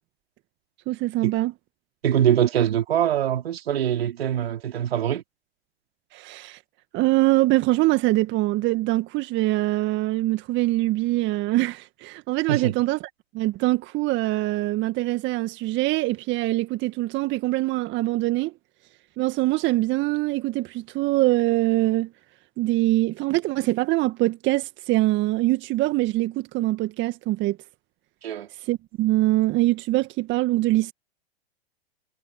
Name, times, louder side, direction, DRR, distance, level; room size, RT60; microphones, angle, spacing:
voice 1, 0.9-1.5 6.1-6.6 6.9-13.0 13.3-18.5 19.2-22.1 22.6-27.6 28.6-30.9, right 18 dB, 35° right, 1.8 m, -23 dB
voice 2, 2.0-5.2 12.5-12.7 28.2-28.5, right 10 dB, 70° right, 4.0 m, -23 dB
hypercardioid pair, 105°, 31 cm